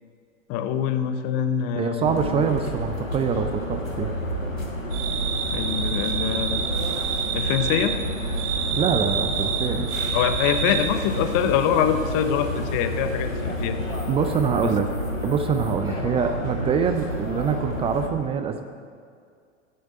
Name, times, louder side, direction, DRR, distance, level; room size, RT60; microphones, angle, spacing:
voice 1, 0.5-2.4 5.5-6.7 7.3-8.0 10.1-13.8 14.6-14.7 16.0-16.1, left 8 dB, 35° left, 10 dB, 0.9 m, -24 dB
voice 2, 1.8-4.1 8.7-9.9 14.1-14.9 15.2-18.6, right 7 dB, 15° right, 7 dB, 0.5 m, -25 dB
sound 1, 2.0-18.1, equal, 85° left, 1.8 m, -29 dB
sound 2, 4.9-10.9, right 8 dB, 40° right, 1.2 m, -28 dB
9.5 x 8.6 x 7.7 m, 2.2 s
figure-of-eight pair, 90°, 39 cm